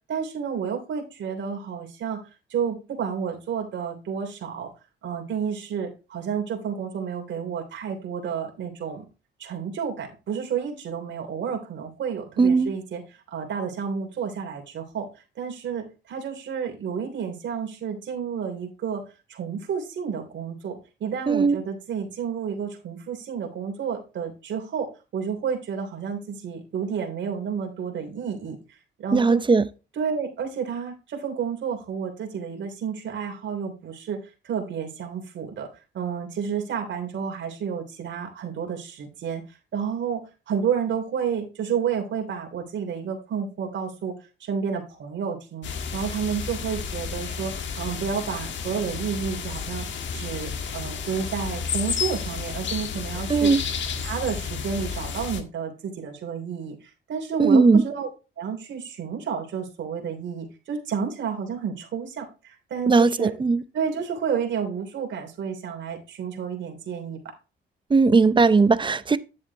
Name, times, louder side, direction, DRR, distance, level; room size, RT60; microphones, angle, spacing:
voice 1, 0.1-2.2 2.5-4.7 5.0-9.0 9.4-15.1 15.4-19.0 19.3-28.6 29.0-29.4 29.9-35.7 35.9-40.2 40.5-44.1 44.4-49.9 50.1-53.5 54.0-58.1 58.4-63.3 63.7-67.2, right 7 dB, 70° right, 3.1 m, -30 dB
voice 2, 12.4-12.7 21.3-21.6 29.1-29.6 53.3-53.6 57.4-57.8 62.9-63.6 67.9-69.2, right 4 dB, 25° right, 0.7 m, -18 dB
sound 1, 45.6-55.4, left 6 dB, 70° left, 1.6 m, -31 dB
10.0 x 7.4 x 2.9 m
cardioid pair, 90°, 20 cm